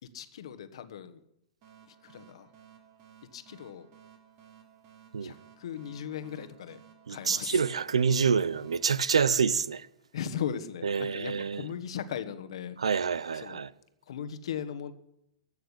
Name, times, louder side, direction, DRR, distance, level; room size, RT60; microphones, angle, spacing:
voice 1, 0.0-1.2 1.9-2.5 3.3-3.9 5.2-6.8 7.1-7.6 10.1-12.8 13.3-13.6 14.1-14.9, left 8 dB, 70° left, 1.3 m, -38 dB
sound 1, 1.6-9.9, right 9 dB, 50° right, 3.2 m, -57 dB
voice 2, 7.1-9.9 10.8-11.7 12.8-13.7, right 6 dB, 90° right, 0.6 m, -27 dB
15.5 x 6.6 x 10.0 m
hypercardioid pair, 120°, 3 cm